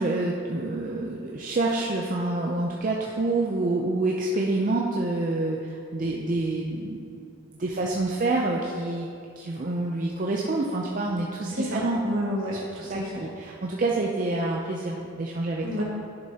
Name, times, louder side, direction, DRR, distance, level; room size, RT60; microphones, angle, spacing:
voice 1, 0.0-7.0 7.5-9.1 9.4-12.0 12.8-15.6, right 2 dB, 40° right, -2 dB, 0.5 m, -27 dB
voice 2, 11.5-13.2 15.6-15.8, equal, 65° right, -4 dB, 1.9 m, -30 dB
10.5 x 6.8 x 2.8 m, 2.5 s
head